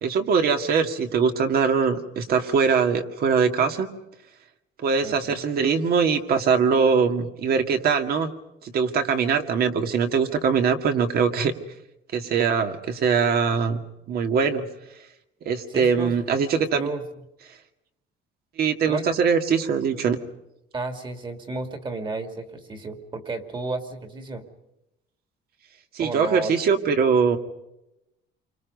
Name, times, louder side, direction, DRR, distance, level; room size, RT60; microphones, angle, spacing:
voice 1, 0.0-3.9 4.8-8.3 8.6-11.5 12.1-13.8 14.1-14.7 15.5-16.9 18.6-20.2 25.9-27.4, right 6 dB, 50° right, 6 dB, 2.1 m, -22 dB
voice 2, 5.0-5.4 15.7-16.2 16.7-17.1 18.9-19.1 20.7-24.5 26.0-26.5, right 3 dB, 25° right, 7 dB, 2.5 m, -32 dB
29.0 x 25.0 x 5.4 m, 0.88 s
cardioid pair, 160°, 20 cm